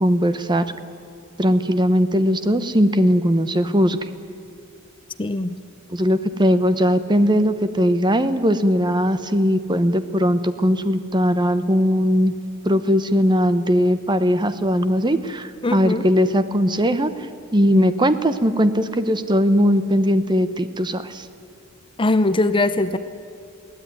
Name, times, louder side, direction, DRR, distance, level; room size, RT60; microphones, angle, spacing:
voice 1, 0.0-0.6 1.4-4.0 5.9-12.3 12.6-17.1 17.5-21.3, equal, 20° right, 11 dB, 1.0 m, -19 dB
voice 2, 5.2-5.6 15.6-16.1 22.0-23.0, left 2 dB, 25° left, 12 dB, 0.7 m, -21 dB
22.5 x 17.0 x 9.5 m, 2.7 s
head